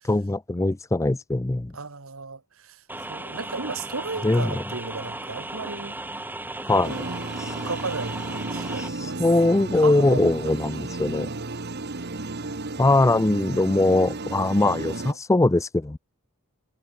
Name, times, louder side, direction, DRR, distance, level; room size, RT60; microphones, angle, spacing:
voice 1, 0.0-1.7 4.2-4.6 6.7-7.0 7.4-7.5 9.2-11.3 12.8-16.0, left 2 dB, 15° left, 0.5 m, -21 dB
voice 2, 1.7-2.8 3.1-6.0 6.7-9.2 9.5-10.5 11.1-11.4 14.6-15.2, right 4 dB, 70° right, 1.7 m, -35 dB
sound 1, 2.9-8.9, right 2 dB, 10° right, 1.0 m, -36 dB
sound 2, 6.8-15.1, right 2 dB, 50° right, 1.6 m, -33 dB
head